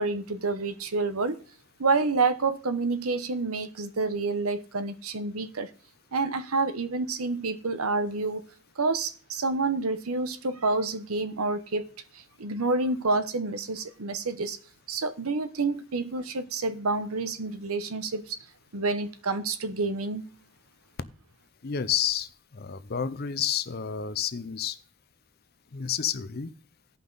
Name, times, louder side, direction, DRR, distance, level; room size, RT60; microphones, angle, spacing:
voice 1, 0.0-1.4 1.8-5.7 6.1-8.4 8.8-11.9 12.1-14.6 14.9-18.4 18.7-20.2, right 3 dB, 75° right, 0.9 m, -28 dB
voice 2, 21.6-24.8 25.7-26.5, left 8 dB, 45° left, 0.6 m, -30 dB
16.0 x 5.7 x 3.9 m
head